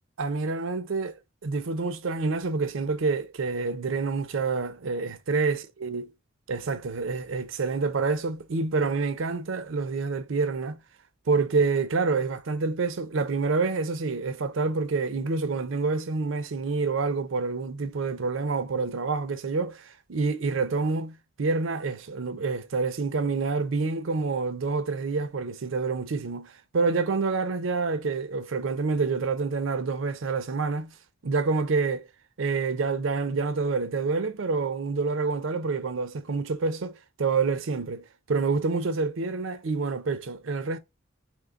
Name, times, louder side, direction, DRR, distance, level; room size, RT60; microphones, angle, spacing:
voice 1, 0.2-1.1 1.4-6.0 6.5-10.8 11.3-30.9 31.2-32.1 32.4-40.8, right 4 dB, 65° right, 0.5 m, -27 dB
3.6 x 3.1 x 3.8 m
head